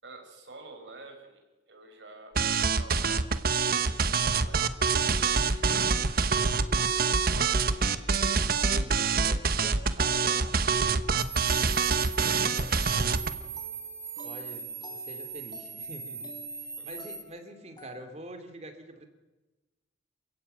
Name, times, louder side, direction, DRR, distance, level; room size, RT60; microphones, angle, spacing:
voice 1, 0.0-5.5 6.6-8.5 12.2-13.2 16.8-16.9, right 3 dB, 75° right, 4 dB, 6.1 m, -50 dB
sound 1, 2.4-13.3, right 5 dB, 55° right, 1.1 m, -25 dB
voice 2, 8.7-10.6 12.2-12.8 14.2-19.1, equal, 35° right, 7 dB, 3.1 m, -45 dB
sound 2, 11.2-17.2, right 5 dB, 15° right, 4.2 m, -40 dB
sound 3, 12.5-18.3, left 1 dB, 25° left, 3.7 m, -51 dB
28.5 x 15.5 x 9.2 m, 1.1 s
head